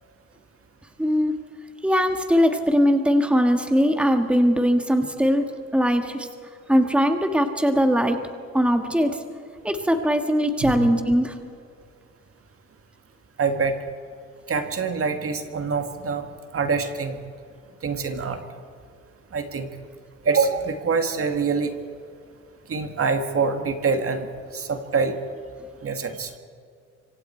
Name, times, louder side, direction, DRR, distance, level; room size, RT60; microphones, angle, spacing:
voice 1, 1.0-1.3 1.8-5.5 5.7-6.3 6.7-8.2 8.5-9.2 9.6-11.4, equal, 5° right, 6 dB, 1.7 m, -20 dB
voice 2, 13.4-13.8 14.5-16.3 16.5-17.2 17.8-18.4 19.3-19.7 20.2-21.7 22.7-25.2 25.8-26.3, right 5 dB, 50° right, 6 dB, 2.1 m, -25 dB
25.5 x 24.5 x 4.6 m, 2.3 s
cardioid pair, 90°, 30 cm